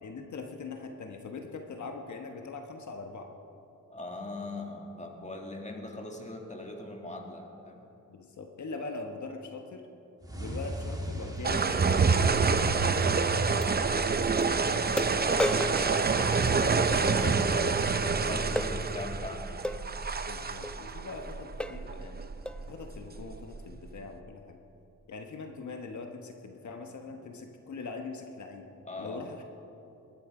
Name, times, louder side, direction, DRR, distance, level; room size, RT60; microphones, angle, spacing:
voice 1, 0.0-3.3 8.1-9.9 10.3-12.2 14.4-14.8 15.6-15.8 16.6-17.2 20.3-22.3 22.7-24.6 25.1-28.7 29.0-29.4, left 4 dB, 70° left, 4 dB, 1.2 m, -42 dB
voice 2, 3.9-7.8 12.7-12.8 13.3-13.8 15.3-16.0 16.9-17.5 17.9-19.7 28.8-29.2, left 2 dB, 25° left, 2 dB, 2.0 m, -40 dB
sound 1, 10.2-13.4, equal, 10° right, 1.9 m, -38 dB
sound 2, 11.4-24.0, right 4 dB, 30° right, 0.7 m, -27 dB
sound 3, 12.6-12.7 13.6-13.7 14.4-14.5 15.0-16.9 18.6-18.8 19.6-19.8 20.6-20.8 21.2-21.3 21.6-21.9 22.5-22.7, left 1 dB, 5° left, 0.4 m, -34 dB
21.5 x 11.0 x 4.9 m, 2.8 s
wide cardioid pair, 110°, 30 cm